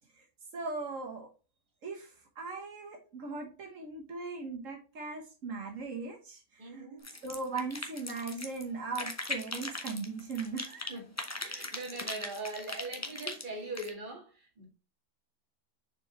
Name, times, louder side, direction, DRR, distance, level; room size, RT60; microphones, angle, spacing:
voice 1, 0.5-1.3 1.8-6.8 7.2-11.0, right 4 dB, 75° right, 1.5 m, -39 dB
voice 2, 6.6-7.1 10.9-14.6, right 2 dB, 40° right, 2.1 m, -41 dB
sound 1, 7.0-8.6 8.9-10.9 11.2-13.9, left 2 dB, 15° left, 0.8 m, -39 dB
6.9 x 4.6 x 3.1 m
omnidirectional pair, 1.3 m